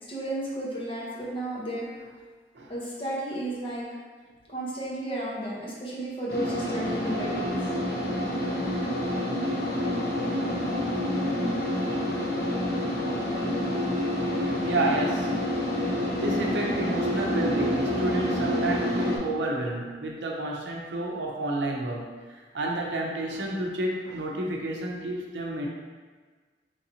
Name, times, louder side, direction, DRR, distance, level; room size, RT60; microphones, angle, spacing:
voice 1, 0.1-1.9 2.7-3.8 4.5-7.7, right 1 dB, 30° left, -6 dB, 0.9 m, -33 dB
sound 1, 6.3-19.2, left 1 dB, 60° left, 0.9 m, -28 dB
voice 2, 14.6-15.5 15.9-25.7, right 1 dB, 80° right, -1 dB, 0.6 m, -31 dB
3.2 x 2.8 x 4.1 m, 1.5 s
head